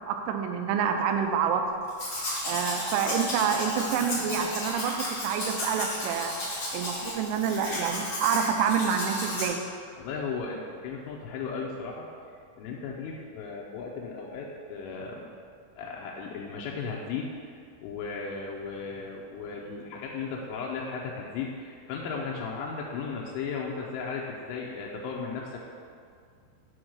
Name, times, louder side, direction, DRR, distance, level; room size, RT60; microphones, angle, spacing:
voice 1, 0.1-1.6 2.4-6.4 6.7-9.6, right 7 dB, 85° right, 5 dB, 3.1 m, -27 dB
Domestic sounds home sounds, 1.9-9.5, left 1 dB, 65° left, 1.0 m, -33 dB
voice 2, 10.0-12.1 12.6-15.3 15.8-17.3 17.8-25.6, left 5 dB, 85° left, -2 dB, 3.1 m, -35 dB
7.9 x 3.8 x 6.2 m, 2.2 s
omnidirectional pair, 5.5 m